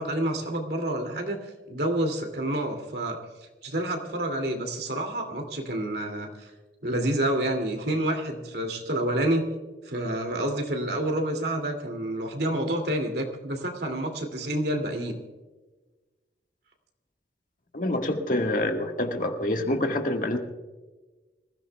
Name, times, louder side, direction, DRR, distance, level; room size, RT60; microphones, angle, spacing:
voice 1, 0.0-1.4 1.7-3.2 3.6-6.5 6.8-9.5 9.9-15.1, right 1 dB, 65° right, 3 dB, 2.6 m, -28 dB
voice 2, 17.7-20.4, left 1 dB, 50° left, 3 dB, 1.7 m, -26 dB
26.0 x 16.0 x 2.3 m, 1.2 s
head